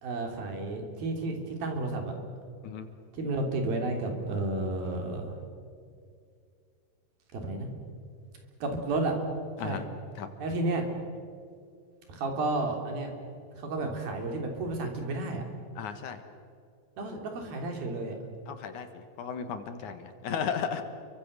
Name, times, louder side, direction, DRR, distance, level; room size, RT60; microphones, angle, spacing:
voice 1, 0.0-2.1 3.1-5.4 7.3-7.7 8.6-9.1 9.6-9.8 10.4-10.9 12.1-13.1 13.5-15.4 17.0-18.2, right 2 dB, 90° right, 3 dB, 5.1 m, -32 dB
voice 2, 15.8-16.2 18.5-20.8, left 7 dB, 65° left, 8 dB, 2.8 m, -35 dB
29.5 x 24.0 x 6.8 m, 2.3 s
omnidirectional pair, 4.1 m